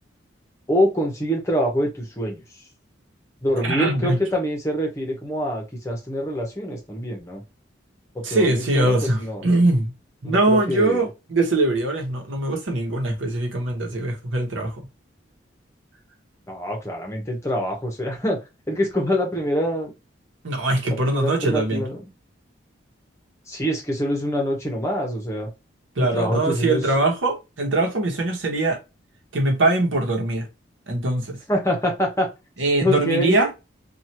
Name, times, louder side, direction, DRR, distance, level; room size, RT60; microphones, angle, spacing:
voice 1, 0.7-2.4 3.4-7.4 8.1-9.4 10.2-11.1 16.5-18.4 18.7-19.9 21.1-22.0 23.5-25.5 26.0-26.8 31.5-32.3 32.8-33.4, equal, 15° left, 0.9 m, -25 dB
voice 2, 3.6-4.2 8.2-9.9 10.2-14.9 20.4-21.8 26.0-28.8 29.3-30.5 30.9-31.4 32.6-33.5, right 2 dB, 80° right, 1.0 m, -22 dB
3.1 x 2.4 x 2.8 m
head